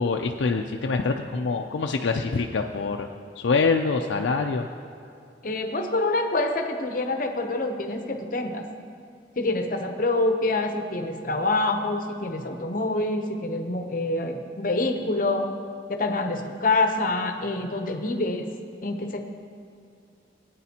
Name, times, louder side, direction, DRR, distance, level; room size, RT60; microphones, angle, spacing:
voice 1, 0.0-3.1 3.4-4.7, left 4 dB, 85° left, 3 dB, 0.4 m, -25 dB
voice 2, 5.4-8.7 9.4-15.5 15.9-18.5 18.8-19.2, left 2 dB, 45° left, 5 dB, 0.7 m, -26 dB
18.0 x 9.1 x 2.8 m, 2.4 s
head